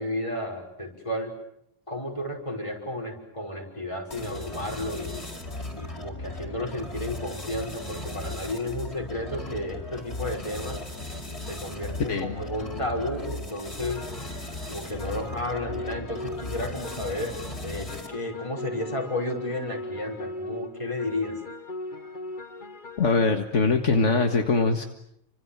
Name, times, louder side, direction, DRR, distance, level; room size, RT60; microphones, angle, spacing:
voice 1, 0.0-1.3 1.9-5.2 5.7-10.8 11.5-14.0 14.7-17.3 17.6-21.4, left 1 dB, 25° left, 2 dB, 5.8 m, -32 dB
sound 1, 4.1-18.3, left 1 dB, 55° left, 4.7 m, -37 dB
voice 2, 12.1-12.4 23.0-24.8, left 4 dB, 70° left, 5 dB, 2.1 m, -22 dB
sound 2, 13.9-23.3, left 2 dB, 40° left, 1.6 m, -39 dB
30.0 x 26.0 x 7.5 m, 0.74 s
omnidirectional pair, 1.3 m